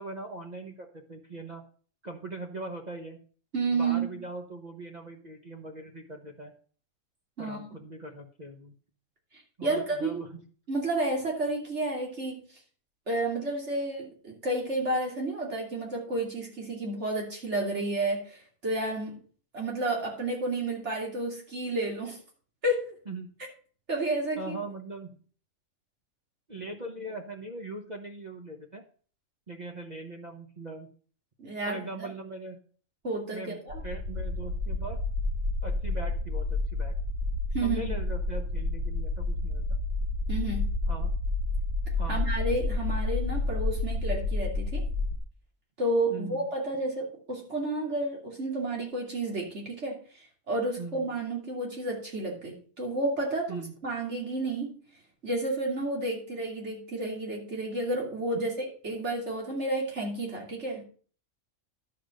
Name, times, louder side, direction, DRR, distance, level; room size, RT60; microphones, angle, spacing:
voice 1, 0.0-1.6 2.0-3.2 3.7-6.5 7.4-8.7 9.6-10.4 23.1-23.3 24.3-25.1 26.5-28.8 29.5-30.9 31.7-32.6 33.3-35.0 35.6-37.0 37.6-39.6 40.9-41.1 42.0-42.3 46.1-46.5 50.8-51.1 53.5-53.8, right 2 dB, 35° right, 2 dB, 1.1 m, -40 dB
voice 2, 3.5-4.1 7.4-7.6 9.6-10.2 10.7-12.4 13.1-19.2 19.5-22.2 22.6-22.9 23.9-24.5 31.4-32.1 33.0-33.8 37.5-37.9 40.3-40.7 42.1-44.8 45.8-54.7 55.2-60.8, right 2 dB, 60° right, -1 dB, 3.2 m, -31 dB
sound 1, 33.7-45.2, left 2 dB, 75° right, 2.1 m, -30 dB
11.5 x 5.1 x 6.5 m, 0.44 s
omnidirectional pair, 1.4 m